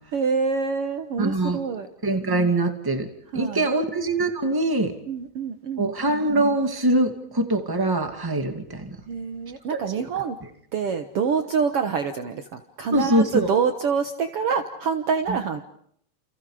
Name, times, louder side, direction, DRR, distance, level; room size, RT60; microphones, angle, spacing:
voice 1, 0.1-1.9 3.3-3.7 5.1-5.9 9.1-10.4 10.7-15.6, right 6 dB, 80° right, 7 dB, 1.3 m, -26 dB
voice 2, 1.2-1.6 2.0-3.1 3.3-4.9 5.8-8.9 9.7-10.0 12.9-13.5 15.3-15.4, right 2 dB, 10° right, 6 dB, 1.0 m, -23 dB
29.5 x 29.5 x 5.0 m, 0.68 s
omnidirectional pair, 4.5 m